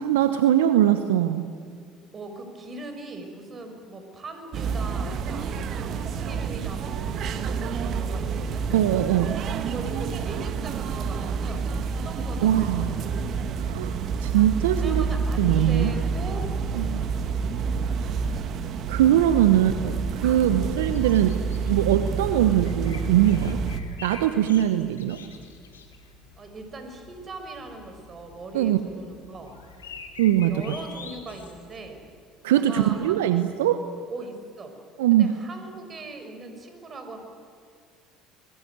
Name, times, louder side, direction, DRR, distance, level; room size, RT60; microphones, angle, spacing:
voice 1, 0.0-1.5 8.7-9.4 12.4-12.9 13.6-13.9 14.2-15.0 15.4-15.9 16.7-17.0 18.3-18.4 18.9-21.4 21.7-23.6 24.0-25.2 28.5-28.8 30.2-30.6 32.4-33.8 35.0-35.3, right 12 dB, 80° right, 10 dB, 1.0 m, -21 dB
voice 2, 2.1-8.6 9.7-13.1 14.8-16.5 17.0-17.4 18.2-18.5 20.4-20.6 26.4-29.6 30.4-32.0 32.5-33.5 34.1-34.8 35.1-37.2, right 2 dB, 35° right, 6 dB, 6.0 m, -40 dB
sound 1, 4.5-23.8, right 5 dB, 55° right, 1.9 m, -28 dB
sound 2, 20.9-32.0, left 5 dB, 90° left, 2.9 m, -47 dB
25.5 x 21.5 x 9.4 m, 2.2 s
hypercardioid pair, 65°, 0 cm